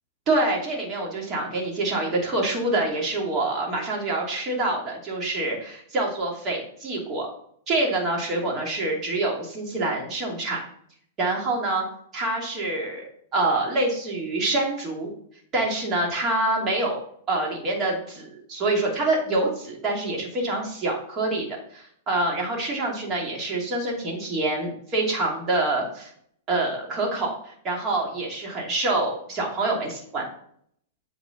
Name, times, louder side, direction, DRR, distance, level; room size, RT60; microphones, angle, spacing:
voice 1, 0.3-7.3 7.7-10.6 11.2-11.8 12.1-13.0 13.3-15.1 15.5-17.0 17.3-21.5 21.7-26.1 26.5-30.3, right 2 dB, 30° right, -1 dB, 2.7 m, -26 dB
8.2 x 5.0 x 4.0 m, 0.65 s
hypercardioid pair, 120°, 0 cm